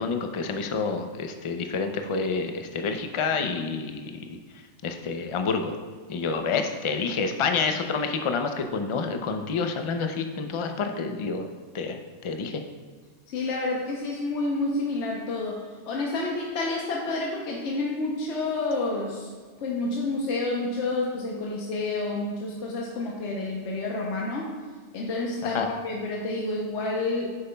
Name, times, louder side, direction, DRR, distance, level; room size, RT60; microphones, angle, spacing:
voice 1, 0.0-4.4 4.8-5.7 6.1-11.5 11.7-12.6 25.4-25.7, left 5 dB, 45° left, 6 dB, 0.4 m, -28 dB
voice 2, 13.3-19.3 19.6-24.5 24.9-27.4, left 2 dB, 75° left, -2 dB, 1.1 m, -29 dB
9.5 x 6.8 x 2.2 m, 1.5 s
omnidirectional pair, 1.2 m